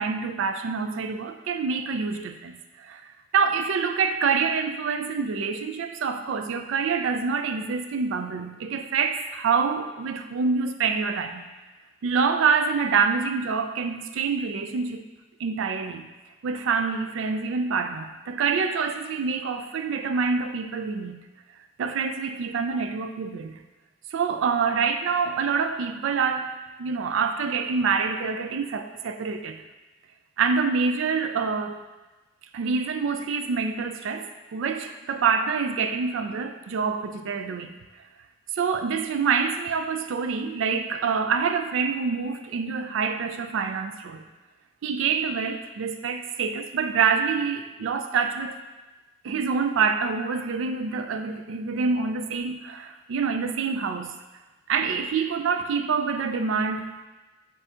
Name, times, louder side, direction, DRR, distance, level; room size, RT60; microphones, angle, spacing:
voice 1, 0.0-11.5 12.0-15.1 15.4-16.1 16.4-21.2 21.8-23.6 24.1-26.5 26.8-29.6 30.4-31.8 32.5-37.8 38.5-44.2 44.8-48.6 49.2-54.2 54.7-57.0, right 5 dB, 75° right, 8 dB, 0.3 m, -26 dB
7.6 x 2.7 x 2.4 m, 1.2 s
head